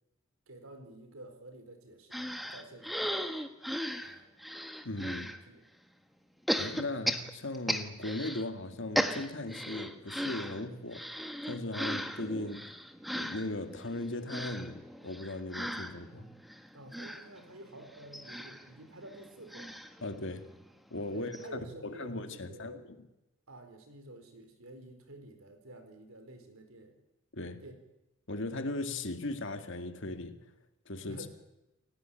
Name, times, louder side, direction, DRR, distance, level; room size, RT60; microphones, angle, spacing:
voice 1, 0.5-3.2 4.0-4.3 5.1-5.6 16.7-19.8 21.1-22.8 23.5-27.0 27.6-27.7 31.1-31.3, right 1 dB, 70° right, 4.6 m, -50 dB
sound 1, 2.1-5.4 6.5-8.5 8.7-20.7 21.0-21.1 21.3-21.5, equal, ahead, 1.4 m, -37 dB
voice 2, 4.8-5.3 6.6-12.7 13.1-16.3 20.0-20.5 20.9-22.7 27.3-27.6 28.3-30.4 30.9-31.2, left 2 dB, 55° left, 2.1 m, -38 dB
29.0 x 16.5 x 9.1 m
head